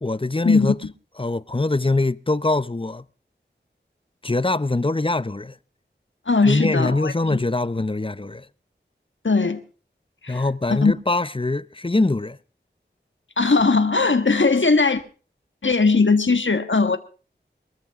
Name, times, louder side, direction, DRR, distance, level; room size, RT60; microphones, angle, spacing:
voice 1, 0.0-0.8 1.2-3.0 4.2-5.6 6.4-8.5 10.3-12.4, left 2 dB, 30° left, 0.7 m, -23 dB
voice 2, 6.3-7.4 9.2-9.6 10.2-10.4 10.7-10.9 13.4-15.0 15.6-17.0, left 4 dB, 85° left, 1.5 m, -19 dB
23.0 x 14.0 x 3.6 m
wide cardioid pair, 50°, 19 cm